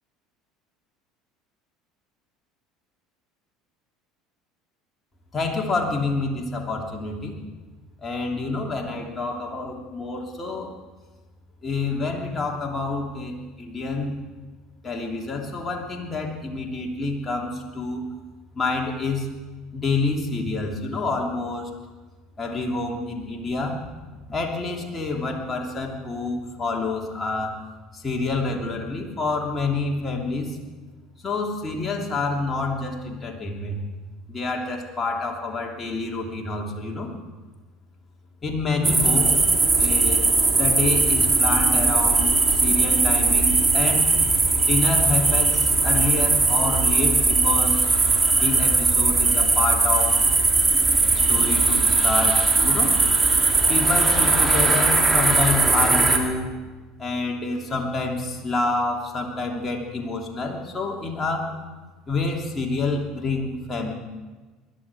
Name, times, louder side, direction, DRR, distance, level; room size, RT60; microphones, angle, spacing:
voice 1, 5.3-7.4 8.0-10.7 11.6-14.1 14.8-18.0 18.5-19.3 19.7-21.7 22.4-23.8 24.3-27.6 27.9-30.6 31.2-33.8 34.3-37.1 38.4-39.3 39.8-40.2 40.5-44.1 44.6-47.9 48.4-50.2 51.1-53.0 53.7-56.5 57.0-61.5 62.1-63.9, left 3 dB, 25° left, 0 dB, 3.0 m, -28 dB
sound 1, 38.8-56.2, right 3 dB, 20° right, 2.6 m, -19 dB
21.0 x 12.0 x 4.9 m, 1.3 s
hypercardioid pair, 70°, 0 cm